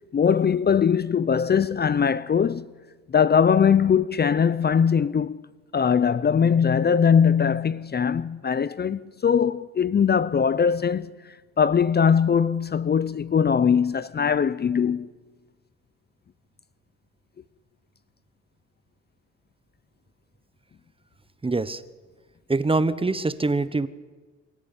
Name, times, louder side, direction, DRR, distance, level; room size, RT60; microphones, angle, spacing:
voice 1, 0.1-2.7 3.1-5.4 5.7-15.1, left 7 dB, 35° left, 0.6 m, -21 dB
voice 2, 21.4-21.8 22.5-23.9, right 3 dB, 20° right, 1.1 m, -24 dB
25.5 x 14.5 x 10.0 m
cardioid pair, 90°, 30 cm